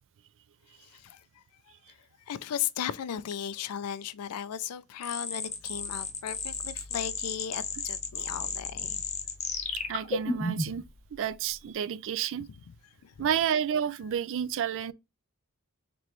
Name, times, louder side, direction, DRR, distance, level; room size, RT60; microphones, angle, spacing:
voice 1, 0.8-1.4 1.9-2.0 2.3-9.0 13.0-13.3, left 9 dB, 85° left, 0.4 m, -36 dB
sound 1, 5.0-10.9, left 4 dB, 30° left, 0.8 m, -33 dB
voice 2, 9.9-10.8 11.1-12.5 13.2-14.9, right 8 dB, 60° right, 0.3 m, -30 dB
4.3 x 3.1 x 3.0 m
head